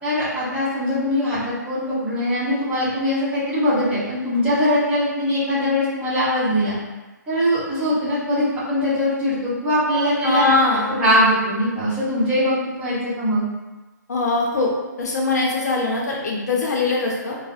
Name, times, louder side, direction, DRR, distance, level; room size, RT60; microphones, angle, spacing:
voice 1, 0.0-6.7 7.3-10.5 10.9-13.4, left 1 dB, 15° right, -11 dB, 1.1 m, -21 dB
voice 2, 10.2-10.9 14.1-14.7 15.0-17.4, left 3 dB, 60° left, -1 dB, 0.6 m, -21 dB
3.8 x 2.0 x 2.5 m, 1.1 s
hypercardioid pair, 150°, 10 cm